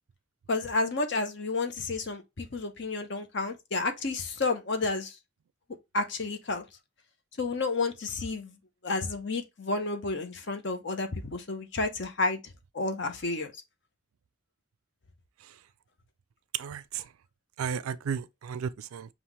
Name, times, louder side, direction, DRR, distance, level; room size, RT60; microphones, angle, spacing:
voice 1, 0.5-5.1 5.9-6.7 7.4-8.6 8.8-12.4 12.7-13.5, left 3 dB, 55° left, 0.8 m, -31 dB
voice 2, 16.5-17.0 17.6-19.1, right 7 dB, 85° right, 0.4 m, -34 dB
5.5 x 2.5 x 3.0 m
head